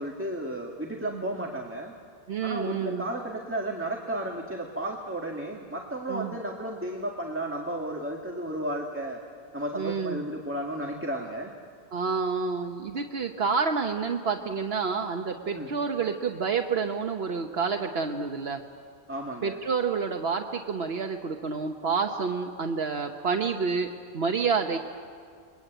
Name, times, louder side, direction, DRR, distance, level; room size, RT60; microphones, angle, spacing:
voice 1, 0.0-1.9 2.4-9.2 9.5-11.5 15.4-15.7 19.1-19.6, right 1 dB, 10° right, 0 dB, 1.8 m, -33 dB
voice 2, 2.3-3.1 6.1-6.3 9.8-10.2 11.9-18.6 19.4-24.8, right 5 dB, 70° right, 5 dB, 1.3 m, -29 dB
29.5 x 22.5 x 9.1 m, 2.1 s
omnidirectional pair, 1.1 m